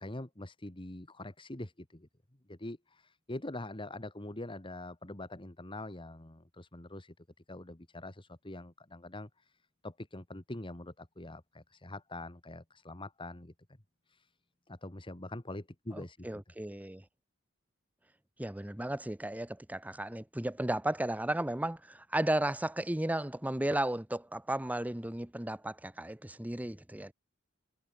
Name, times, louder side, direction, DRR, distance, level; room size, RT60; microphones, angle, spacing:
voice 1, 0.0-2.1 2.5-7.1 7.5-13.5 14.1-14.3 14.7-16.3, left 1 dB, 25° left, 1.9 m, -44 dB
voice 2, 15.9-17.0 18.4-27.1, right 1 dB, 5° right, 0.7 m, -34 dB
head